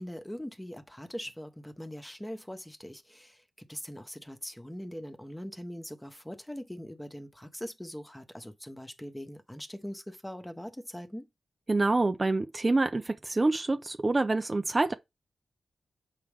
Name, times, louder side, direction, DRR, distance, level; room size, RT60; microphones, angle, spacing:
voice 1, 0.0-11.3, equal, 10° left, 1.2 m, -42 dB
voice 2, 11.7-14.9, right 2 dB, 30° right, 0.7 m, -26 dB
7.6 x 4.7 x 3.6 m
cardioid pair, 65°, 0 cm